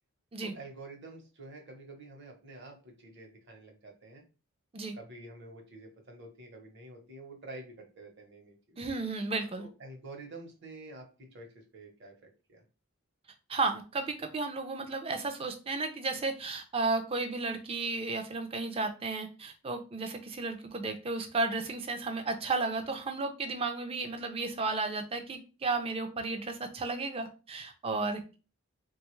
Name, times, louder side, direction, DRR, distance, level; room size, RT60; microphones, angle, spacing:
voice 1, 0.4-4.2 4.9-8.8 9.6-12.6, right 2 dB, 50° right, 2 dB, 0.9 m, -48 dB
voice 2, 8.8-9.7 13.5-28.4, right 3 dB, 25° right, 6 dB, 0.4 m, -33 dB
3.4 x 2.3 x 3.0 m, 0.33 s
head